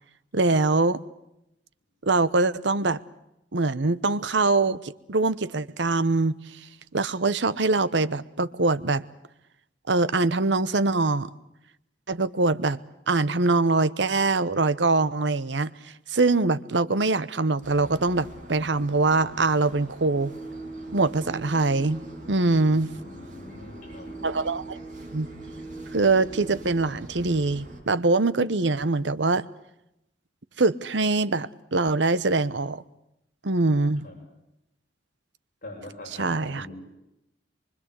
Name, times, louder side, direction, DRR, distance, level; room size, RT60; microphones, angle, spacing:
voice 1, 0.3-1.0 2.0-3.0 3.5-6.4 6.9-9.0 9.9-11.3 12.1-12.8 13.1-15.7 16.1-20.3 20.9-22.9 24.2-24.8 25.1-25.3 25.9-29.4 30.6-32.8 33.4-34.1 36.2-36.7, right 3 dB, 75° right, 1.0 m, -23 dB
sound 1, 17.6-27.8, right 1 dB, 45° right, 5.5 m, -46 dB
sound 2, 20.2-26.9, right 2 dB, 25° left, 4.9 m, -42 dB
voice 2, 22.9-24.1 34.0-34.2 35.6-36.7, left 2 dB, 50° left, 7.7 m, -43 dB
24.5 x 24.5 x 8.2 m
head